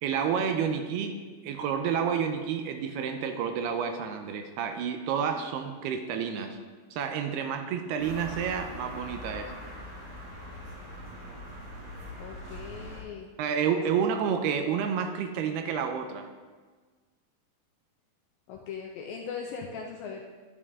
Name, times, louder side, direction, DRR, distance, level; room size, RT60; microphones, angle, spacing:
voice 1, 0.0-6.6 6.9-9.5 13.4-16.3, right 7 dB, 80° right, 6 dB, 2.5 m, -30 dB
sound 1, 8.0-13.0, equal, 30° right, 1.9 m, -42 dB
voice 2, 12.2-13.3 18.5-20.2, left 6 dB, 85° left, 1 dB, 2.1 m, -39 dB
11.0 x 7.9 x 3.6 m, 1.4 s
omnidirectional pair, 4.8 m